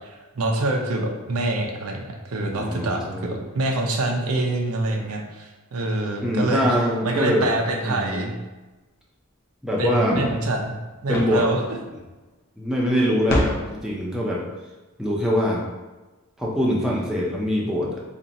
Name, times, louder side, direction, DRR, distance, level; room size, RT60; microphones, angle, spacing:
voice 1, 0.0-6.6 7.0-8.3 9.8-10.8 11.0-11.6, right 2 dB, 80° right, 2 dB, 0.6 m, -25 dB
voice 2, 2.5-3.4 6.2-7.5 7.8-8.3 9.6-10.2 11.1-11.5 12.6-14.4 15.0-15.7 16.4-18.0, equal, 5° right, -4 dB, 0.5 m, -23 dB
sound 1, 10.1-12.3 12.7-12.8 13.1-13.4, equal, 45° left, 0.7 m, -28 dB
2.9 x 2.6 x 4.1 m, 1.2 s
head